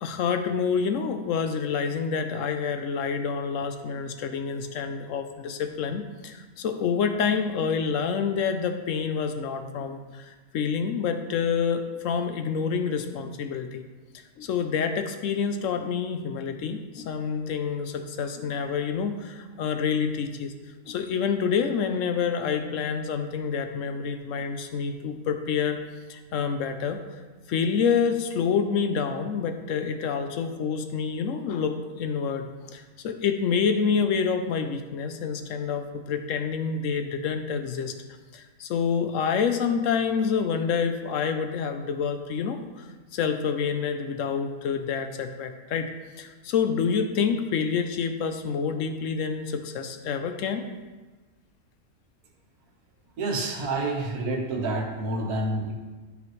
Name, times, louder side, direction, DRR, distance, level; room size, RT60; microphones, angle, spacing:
voice 1, 0.0-13.8 14.4-20.5 20.9-25.8 26.1-27.0 27.5-32.5 32.7-37.9 38.3-42.9 43.1-45.9 46.2-50.6, left 6 dB, 65° left, 7 dB, 0.8 m, -27 dB
voice 2, 53.2-55.7, right 2 dB, 70° right, 0 dB, 1.6 m, -28 dB
10.5 x 5.1 x 3.1 m, 1.3 s
omnidirectional pair, 1.7 m